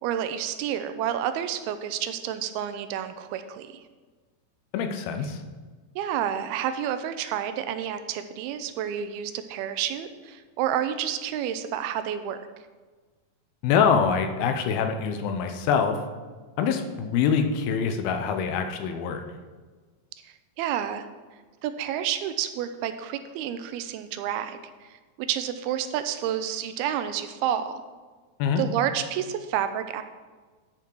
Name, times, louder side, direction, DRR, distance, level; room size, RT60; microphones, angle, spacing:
voice 1, 0.0-3.8 6.0-12.4 20.2-21.1 21.6-27.8 28.6-30.0, right 10 dB, 90° right, 10 dB, 2.5 m, -30 dB
voice 2, 4.7-5.4 13.6-16.0 16.6-19.3 28.4-28.6, left 6 dB, 85° left, 6 dB, 2.7 m, -24 dB
11.5 x 5.9 x 4.6 m, 1.4 s
omnidirectional pair, 4.4 m